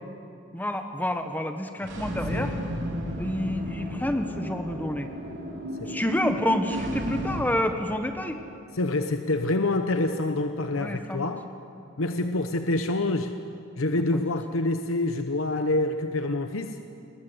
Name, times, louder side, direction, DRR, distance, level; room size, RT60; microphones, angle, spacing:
voice 1, 0.5-2.6 3.2-5.1 5.9-8.4 10.8-11.3 13.9-14.0, left 1 dB, 10° left, 6 dB, 1.2 m, -28 dB
sound 1, 1.8-7.4, equal, 60° right, 4.1 m, -33 dB
voice 2, 8.7-11.4 12.0-13.3 13.8-16.8, left 2 dB, 80° left, 7 dB, 1.0 m, -27 dB
27.5 x 21.0 x 7.9 m, 2.6 s
head